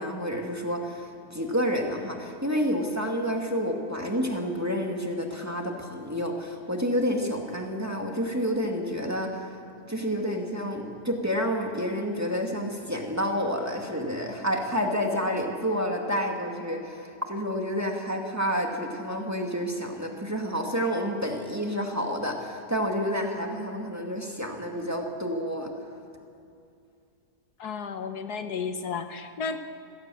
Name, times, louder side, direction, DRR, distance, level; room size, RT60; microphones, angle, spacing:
voice 1, 0.0-9.6 9.9-25.7, equal, 10° right, 1 dB, 2.2 m, -29 dB
voice 2, 27.6-29.6, left 5 dB, 75° left, 8 dB, 1.6 m, -33 dB
27.5 x 16.0 x 7.7 m, 2.5 s
omnidirectional pair, 1.7 m